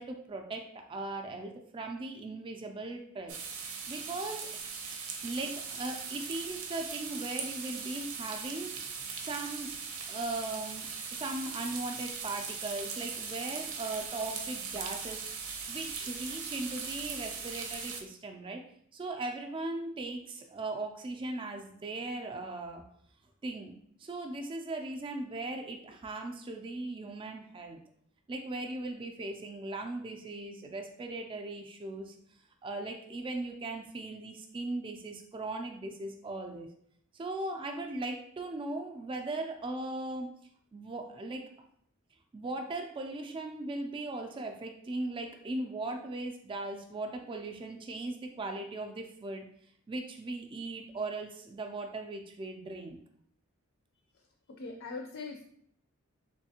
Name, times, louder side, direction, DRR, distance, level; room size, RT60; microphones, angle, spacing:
voice 1, 0.0-3.4 3.9-4.5 5.2-9.7 10.1-18.6 18.9-22.8 23.4-23.7 24.0-27.8 28.3-32.1 32.6-36.7 37.1-40.3 40.7-41.5 42.3-49.5 49.9-53.0, right 2 dB, 25° right, 3 dB, 0.3 m, -38 dB
sound 1, 3.3-18.0, right 5 dB, 80° right, 0.6 m, -39 dB
voice 2, 54.1-55.4, left 3 dB, 65° left, 2 dB, 0.5 m, -42 dB
3.4 x 3.2 x 2.8 m, 0.67 s
head